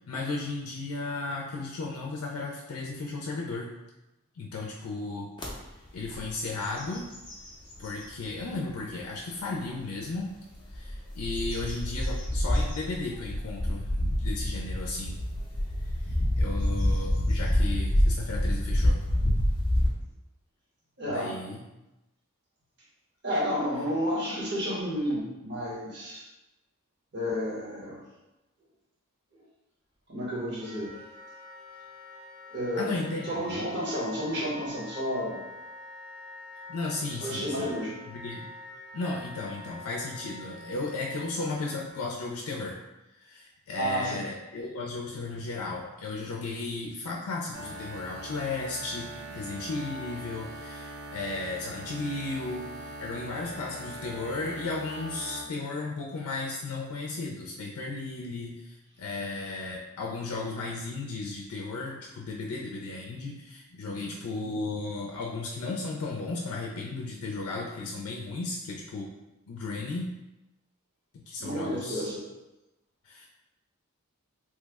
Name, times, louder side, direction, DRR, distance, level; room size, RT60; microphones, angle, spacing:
voice 1, 0.1-3.7 4.3-5.3 5.9-7.1 7.8-10.4 10.7-15.2 15.8-19.0 21.1-21.6 32.8-33.5 36.7-37.7 38.1-38.5 38.9-42.8 43.2-69.1 69.5-70.1 71.3-72.0 73.0-73.3, left 3 dB, 90° left, -2 dB, 0.4 m, -35 dB
sound 1, 5.4-5.5 6.0-6.3 6.6-8.1 8.7-8.8 10.5-19.9, left 1 dB, 20° left, 0.5 m, -27 dB
voice 2, 21.0-21.3 23.2-26.2 27.1-28.0 30.1-30.9 32.5-33.0 33.3-35.4 37.2-38.0 43.7-44.2 64.4-64.6 71.4-72.2, equal, 50° right, -6 dB, 1.0 m, -31 dB
Wind instrument woodwind instrument, 30.6-42.0, left 2 dB, 30° right, 0.4 m, -46 dB
sound 2, 47.5-55.4, right 1 dB, 90° right, 0.5 m, -41 dB
3.1 x 2.1 x 3.4 m, 0.98 s
head